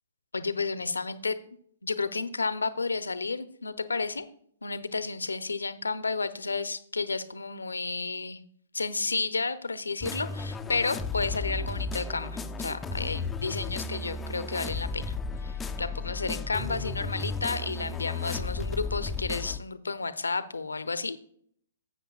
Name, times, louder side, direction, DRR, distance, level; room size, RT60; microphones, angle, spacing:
voice 1, 0.3-1.4 1.8-4.3 4.6-8.4 8.7-15.1 15.4-21.2, left 4 dB, 85° left, 13 dB, 0.7 m, -32 dB
sound 1, 10.0-19.6, left 4 dB, 10° left, 0.5 m, -34 dB
12.0 x 8.1 x 2.4 m, 0.63 s
figure-of-eight pair, 120°, 0 cm